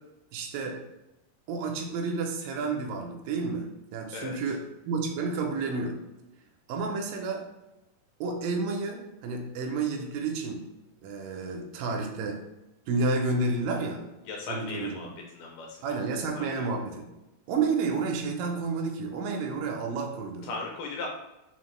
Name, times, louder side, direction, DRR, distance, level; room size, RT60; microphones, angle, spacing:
voice 1, 0.3-0.8 1.5-6.0 6.7-7.4 8.2-10.6 11.0-12.4 12.9-14.0 14.5-15.1 15.8-17.0 17.5-20.5, right 4 dB, 80° right, 1 dB, 2.2 m, -30 dB
voice 2, 14.3-15.1 15.3-16.0 16.3-16.7 20.4-21.1, left 3 dB, 80° left, 0 dB, 1.9 m, -37 dB
5.6 x 2.4 x 3.1 m, 0.98 s
omnidirectional pair, 4.1 m